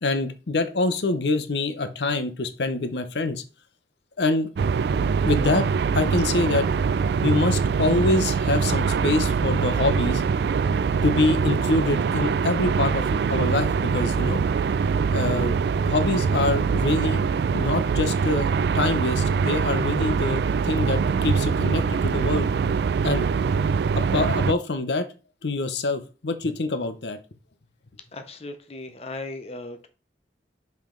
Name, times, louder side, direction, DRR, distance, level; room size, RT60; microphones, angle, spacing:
voice 1, 0.0-3.4 4.2-4.5 5.0-5.7 5.9-6.7 7.2-10.2 11.0-13.0 13.3-14.4 15.1-15.6 15.9-17.2 17.5-22.5 23.0-23.3 24.0-25.1 25.4-27.2, left 3 dB, 80° left, 9 dB, 0.8 m, -25 dB
sound 1, 4.6-24.5, right 5 dB, 70° right, 0.3 m, -23 dB
voice 2, 28.1-29.9, left 2 dB, 35° left, 7 dB, 0.7 m, -37 dB
5.3 x 5.3 x 3.8 m, 0.34 s
head